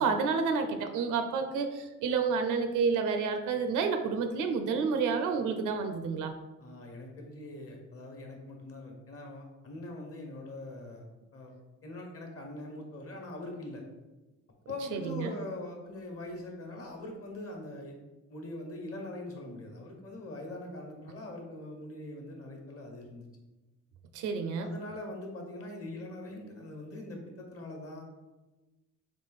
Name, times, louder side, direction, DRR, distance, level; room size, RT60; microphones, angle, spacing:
voice 1, 0.0-6.3 14.9-15.3 24.1-24.7, right 5 dB, 90° right, 7 dB, 0.6 m, -29 dB
voice 2, 6.6-11.1 11.3-11.5 11.8-13.8 14.7-17.9 18.3-23.3 24.6-28.0, left 1 dB, 50° left, 2 dB, 1.2 m, -42 dB
3.7 x 3.4 x 4.0 m, 1.1 s
cardioid pair, 90°, 30 cm